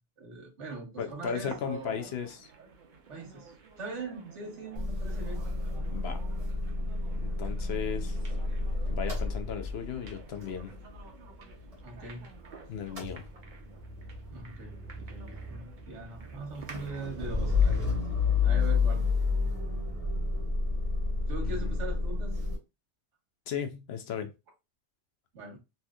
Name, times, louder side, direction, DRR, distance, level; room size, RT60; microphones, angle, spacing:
voice 1, 0.2-2.1 3.1-5.8 11.8-12.3 14.3-18.0 18.4-19.0 21.3-22.4 25.3-25.6, right 3 dB, 75° right, 1.4 m, -41 dB
voice 2, 1.0-2.5 5.9-6.2 7.1-8.2 8.9-10.7 12.7-13.2 21.4-21.8 23.5-24.3, left 7 dB, 65° left, 0.8 m, -36 dB
sound 1, 1.4-17.9, right 5 dB, 50° right, 0.7 m, -52 dB
Motor vehicle (road) / Engine starting / Idling, 4.7-12.5 12.7-22.6, left 4 dB, 35° right, 1.0 m, -31 dB
3.3 x 2.8 x 2.3 m
omnidirectional pair, 1.2 m